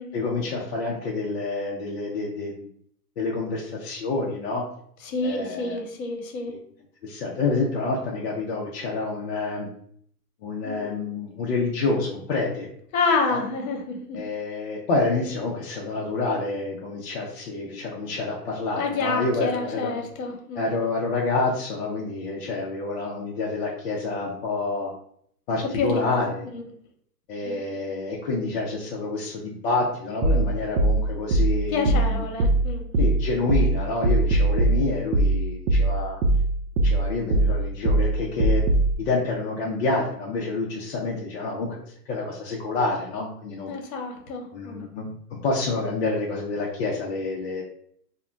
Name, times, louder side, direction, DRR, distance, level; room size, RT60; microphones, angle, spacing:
voice 1, 0.1-2.5 3.2-4.6 5.2-5.8 6.5-6.6 7.0-9.7 10.4-12.7 13.3-13.4 14.1-19.9 20.6-24.9 25.5-26.5 27.3-32.2 33.0-36.2 36.8-38.6 39.0-43.7 44.5-47.6, left 3 dB, 40° left, -3 dB, 0.5 m, -28 dB
voice 2, 5.1-6.5 10.6-10.9 12.9-14.2 18.7-20.8 25.7-26.0 26.5-26.6 27.4-27.6 31.7-33.1 43.7-44.8, left 4 dB, 60° left, 2 dB, 1.0 m, -28 dB
sound 1, 30.2-38.9, right 2 dB, 65° right, 0.6 m, -21 dB
2.1 x 2.1 x 3.7 m, 0.65 s
hypercardioid pair, 130°, 47 cm